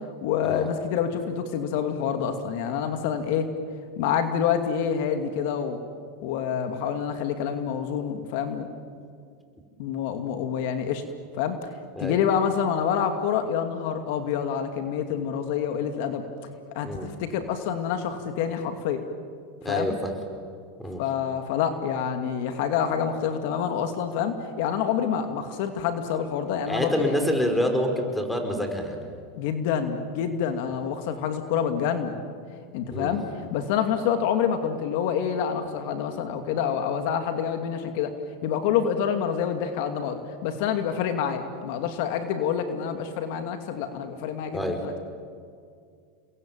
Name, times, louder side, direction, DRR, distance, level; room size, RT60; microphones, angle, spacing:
voice 1, 0.2-3.5 4.0-5.8 6.2-8.7 9.8-11.0 11.4-11.6 12.0-16.2 16.8-19.0 19.7-19.9 21.0-27.2 29.4-32.2 32.7-33.2 33.5-38.1 38.4-44.9, left 8 dB, 65° left, 7 dB, 2.5 m, -27 dB
voice 2, 19.6-20.1 20.8-21.0 26.7-29.0 32.9-33.2 44.5-44.8, equal, 5° left, 5 dB, 5.2 m, -27 dB
29.5 x 22.0 x 9.1 m, 2.2 s
supercardioid pair, 115°, 0 cm